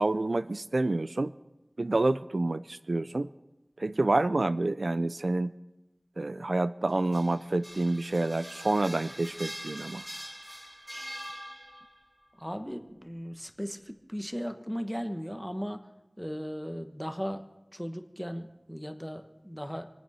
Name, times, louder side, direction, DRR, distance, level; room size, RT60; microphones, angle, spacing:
voice 1, 0.0-1.3 1.8-3.3 3.8-5.5 6.2-10.0, right 2 dB, 75° right, 14 dB, 0.4 m, -28 dB
sound 1, 6.9-12.1, equal, 25° right, 2.0 m, -43 dB
voice 2, 12.4-15.9 16.2-17.4 17.7-19.9, equal, ahead, 7 dB, 1.2 m, -37 dB
25.5 x 8.9 x 5.6 m, 1.0 s
wide cardioid pair, 50°, 0 cm